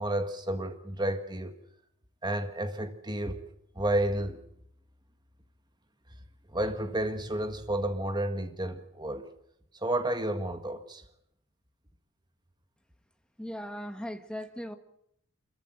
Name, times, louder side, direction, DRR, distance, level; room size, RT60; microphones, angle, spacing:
voice 1, 0.0-1.5 2.2-3.4 3.8-4.4 6.5-9.3 9.7-11.0, right 1 dB, 20° right, 8 dB, 1.7 m, -31 dB
voice 2, 13.4-14.7, equal, 5° left, 7 dB, 1.5 m, -38 dB
27.5 x 14.5 x 9.0 m, 0.74 s
head